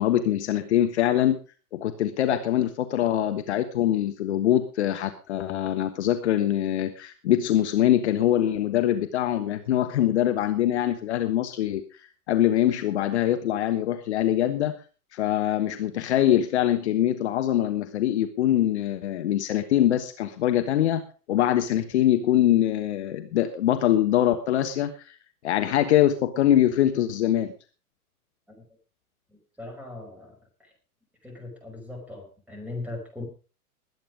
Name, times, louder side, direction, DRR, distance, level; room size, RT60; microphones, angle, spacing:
voice 1, 0.0-1.4 1.7-11.8 12.3-14.7 15.1-21.0 21.3-24.9 25.4-27.5, left 12 dB, 45° left, 8 dB, 1.4 m, -23 dB
voice 2, 29.3-30.3 30.6-30.7 31.2-33.3, left 2 dB, 5° right, 2 dB, 5.7 m, -39 dB
20.5 x 9.2 x 5.0 m, 0.36 s
figure-of-eight pair, 105°, 46 cm